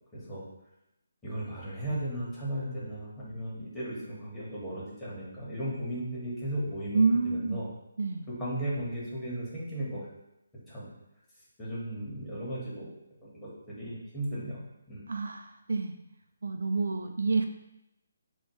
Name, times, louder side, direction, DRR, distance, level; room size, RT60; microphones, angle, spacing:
voice 1, 0.1-0.4 1.2-7.7 8.4-10.1 10.7-10.9 11.6-12.9 13.2-14.6 14.9-15.1, right 1 dB, 10° left, -9 dB, 1.4 m, -36 dB
voice 2, 6.9-7.6 8.0-8.3 15.1-16.0 16.4-17.4, right 4 dB, 75° right, 5 dB, 0.4 m, -28 dB
4.3 x 2.3 x 4.6 m, 0.87 s
figure-of-eight pair, 155°, 0 cm